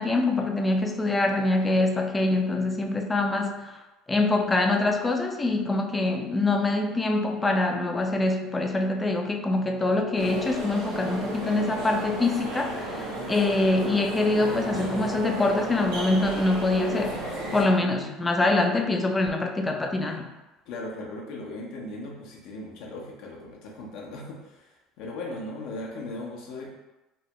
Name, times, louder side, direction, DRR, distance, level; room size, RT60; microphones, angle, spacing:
voice 1, 0.0-3.8 4.1-17.2 17.5-20.3, left 2 dB, 20° left, 3 dB, 0.4 m, -24 dB
sound 1, 10.2-17.6, right 1 dB, 85° right, 0.9 m, -33 dB
voice 2, 17.7-18.5 20.7-26.7, left 2 dB, 70° left, -2 dB, 0.7 m, -38 dB
3.0 x 2.2 x 2.9 m, 1.1 s
supercardioid pair, 90°, 0 cm